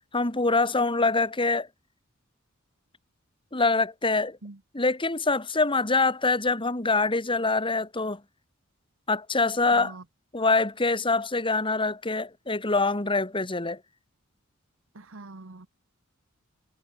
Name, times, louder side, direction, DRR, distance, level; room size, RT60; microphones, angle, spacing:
voice 1, 0.1-1.7 3.5-4.4 4.7-8.2 9.1-10.0 10.3-13.8, left 3 dB, 25° left, 2.2 m, -25 dB
voice 2, 9.7-10.0 14.9-15.7, right 2 dB, 70° right, 1.4 m, -43 dB
head